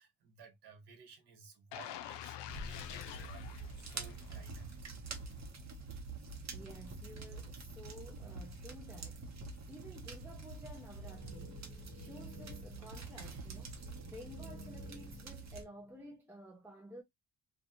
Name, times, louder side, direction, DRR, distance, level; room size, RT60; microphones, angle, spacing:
voice 1, 0.0-4.8, right 5 dB, 70° right, 1.3 m, -57 dB
sound 1, 1.7-4.7 5.1-5.2, left 11 dB, 90° left, 0.5 m, -47 dB
sound 2, 2.5-15.6, right 3 dB, 40° right, 0.9 m, -46 dB
voice 2, 6.5-17.0, equal, 5° right, 0.5 m, -53 dB
sound 3, 11.0-16.1, left 1 dB, 40° left, 0.8 m, -54 dB
2.6 x 2.4 x 2.8 m
cardioid pair, 105°, 41 cm